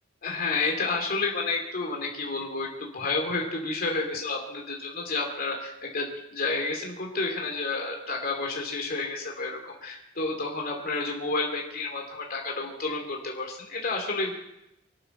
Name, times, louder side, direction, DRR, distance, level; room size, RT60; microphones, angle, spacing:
voice 1, 0.2-14.3, left 3 dB, 45° left, 1 dB, 2.8 m, -30 dB
25.0 x 11.5 x 4.5 m, 0.88 s
head